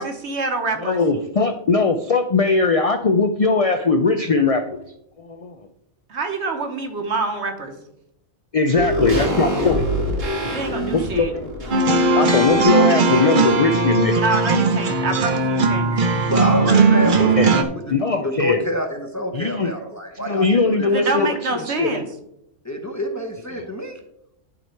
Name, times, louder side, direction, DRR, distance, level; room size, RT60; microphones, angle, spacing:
voice 1, 0.0-1.0 6.1-7.7 10.5-11.3 14.2-15.9 20.8-22.0, right 3 dB, 60° right, 5 dB, 1.4 m, -26 dB
voice 2, 0.8-4.8 5.2-5.6 8.5-9.9 10.4-10.6 10.9-11.7 12.1-14.2 17.4-17.5 17.9-18.6 19.3-19.7 20.3-21.3 21.6-22.0 23.5-23.6, left 3 dB, 60° left, 7 dB, 0.3 m, -20 dB
sound 1, 8.8-13.2 13.5-13.6, equal, 85° right, 2.2 m, -26 dB
sound 2, 11.7-17.6, right 3 dB, 45° right, 0.8 m, -18 dB
voice 3, 15.9-21.1 22.6-24.0, left 1 dB, 15° left, 3 dB, 0.8 m, -27 dB
11.0 x 4.5 x 4.5 m, 0.80 s
omnidirectional pair, 1.3 m